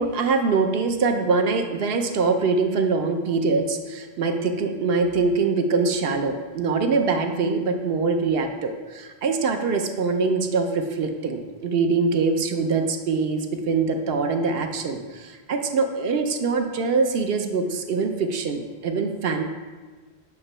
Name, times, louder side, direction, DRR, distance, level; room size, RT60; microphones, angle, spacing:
voice 1, 0.0-19.4, right 4 dB, 70° right, 5 dB, 0.8 m, -23 dB
8.0 x 2.9 x 5.4 m, 1.3 s
omnidirectional pair, 1.1 m